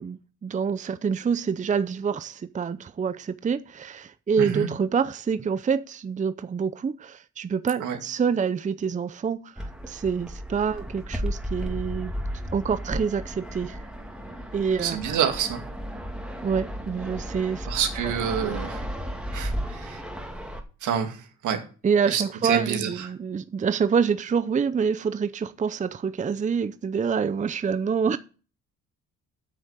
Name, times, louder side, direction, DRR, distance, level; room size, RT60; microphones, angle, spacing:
voice 1, 0.0-12.1 12.5-13.8 14.5-15.1 16.4-17.7 18.4-18.6 21.8-28.2, right 6 dB, 25° right, 0.6 m, -27 dB
voice 2, 4.4-4.7 7.8-8.0 14.8-15.6 17.6-18.8 19.3-20.0 20.8-21.6 22.1-23.1, right 8 dB, 80° right, 2.3 m, -28 dB
Fixed-wing aircraft airplane, 9.6-20.6, equal, 5° right, 2.4 m, -34 dB
8.5 x 6.3 x 8.1 m
cardioid pair, 90°, 30 cm